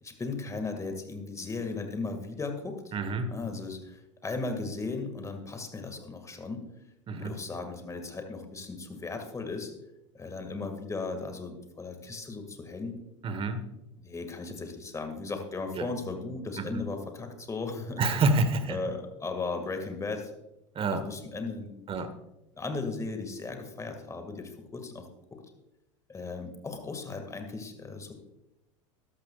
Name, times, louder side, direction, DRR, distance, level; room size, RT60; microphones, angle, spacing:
voice 1, 0.0-2.9 3.3-6.6 7.2-9.7 10.1-13.0 14.0-18.0 18.7-20.3 20.9-21.9 22.5-25.4 26.1-28.1, left 3 dB, 20° left, 6 dB, 2.0 m, -36 dB
voice 2, 2.9-3.3 7.1-7.4 13.2-13.6 15.7-15.9 16.6-16.8 18.0-18.8 20.7-21.1 21.9-22.1, right 3 dB, 35° right, 10 dB, 1.4 m, -28 dB
12.5 x 12.0 x 2.4 m, 0.89 s
hypercardioid pair, 85°, 17 cm